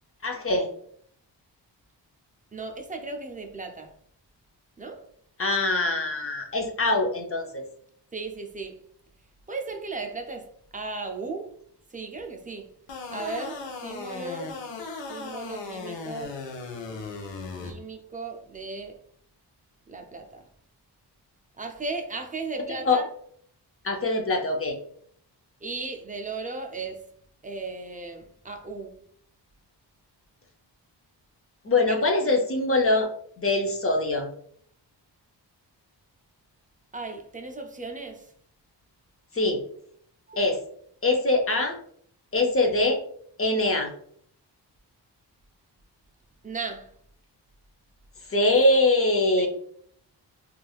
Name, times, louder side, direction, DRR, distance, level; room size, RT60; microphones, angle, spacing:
voice 1, 0.2-0.7 5.4-7.6 22.9-23.0 23.8-24.8 31.6-33.1 33.4-34.3 39.3-39.6 40.4-40.6 41.0-41.8 42.3-43.0 43.4-43.9 48.3-49.5, left 2 dB, 30° left, 0.6 m, -23 dB
voice 2, 2.5-3.9 4.8-5.1 8.1-8.8 9.5-11.5 11.9-12.7 13.1-14.6 15.1-16.4 17.6-19.0 19.9-20.5 21.6-23.1 25.6-27.0 27.4-29.0 31.9-32.0 36.9-38.3 40.3-40.5 46.4-46.9 49.4-49.5, right 3 dB, 20° right, 0.4 m, -36 dB
sound 1, 12.9-17.7, left 4 dB, 85° left, 0.7 m, -37 dB
3.2 x 2.4 x 2.3 m
cardioid pair, 70°, 43 cm